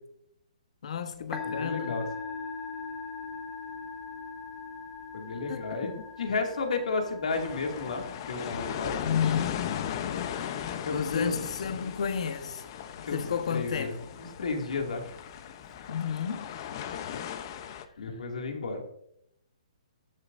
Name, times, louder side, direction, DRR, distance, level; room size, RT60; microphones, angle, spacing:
voice 1, 0.8-2.1 5.5-5.9 9.0-9.7 10.9-12.6 13.0-14.0 15.9-16.5, left 7 dB, 60° left, 1.2 m, -32 dB
Musical instrument, 1.1-15.9, left 4 dB, 10° left, 1.2 m, -43 dB
voice 2, 1.4-2.0 5.1-5.9 6.2-8.9 10.8-11.4 13.0-13.2 13.5-13.9 14.2-15.0 18.0-18.8, left 3 dB, 75° left, 2.4 m, -32 dB
sound 1, 7.3-17.9, left 9 dB, 35° left, 0.8 m, -37 dB
13.5 x 11.5 x 2.6 m
hypercardioid pair, 160°, 4 cm